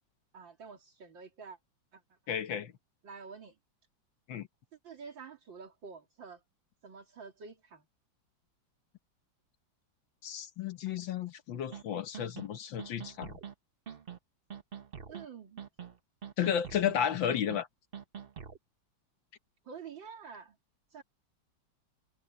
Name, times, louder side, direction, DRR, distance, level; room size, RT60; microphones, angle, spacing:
voice 1, 0.3-1.6 1.9-2.2 3.0-3.6 4.8-6.4 6.8-7.8 15.1-15.6 19.6-20.6 20.9-21.0, right 5 dB, 75° right, 3.2 m, -48 dB
voice 2, 2.3-2.7 4.3-4.5 10.2-13.3 16.4-17.7, left 9 dB, 75° left, 1.8 m, -33 dB
sound 1, 11.7-11.8 12.1-12.5 12.8-13.5 13.9-14.2 14.5-15.3 15.6-16.0 16.2-17.0 17.3-17.6 17.9-18.6, right 7 dB, 35° right, 1.1 m, -44 dB
omnidirectional pair, 2.1 m